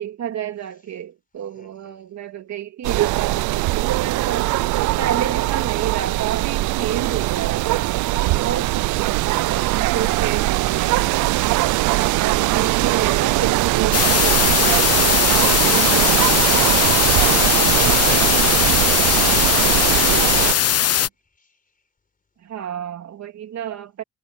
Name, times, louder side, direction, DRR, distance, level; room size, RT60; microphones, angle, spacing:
voice 1, 0.0-11.6 12.0-16.8 17.7-18.0 22.4-24.0, right 9 dB, 65° right, 3.1 m, -30 dB
voice 2, 1.5-2.0 9.6-10.4 12.2-13.5 17.1-17.7 18.1-20.8 21.3-21.6, left 4 dB, 30° left, 5.1 m, -42 dB
sound 1, 2.8-20.5, right 19 dB, 80° right, 0.5 m, -20 dB
sound 2, 6.8-16.8, right 1 dB, 5° right, 2.1 m, -41 dB
sound 3, 13.9-21.1, left 10 dB, 55° left, 0.9 m, -19 dB
cardioid pair, 90°, 30 cm